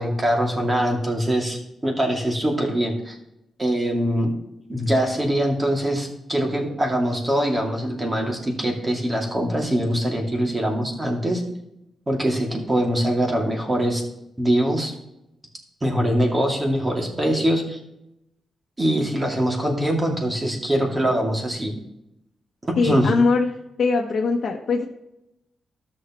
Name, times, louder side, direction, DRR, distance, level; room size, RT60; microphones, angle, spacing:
voice 1, 0.0-3.2 3.6-4.3 4.7-11.4 12.1-14.0 14.4-14.9 15.8-17.8 18.8-21.7 22.6-23.1, equal, 20° right, 0 dB, 2.4 m, -23 dB
voice 2, 22.8-23.5 23.8-24.8, left 4 dB, 60° left, 0 dB, 1.1 m, -21 dB
13.0 x 6.5 x 3.0 m, 0.85 s
cardioid pair, 100°, 0 cm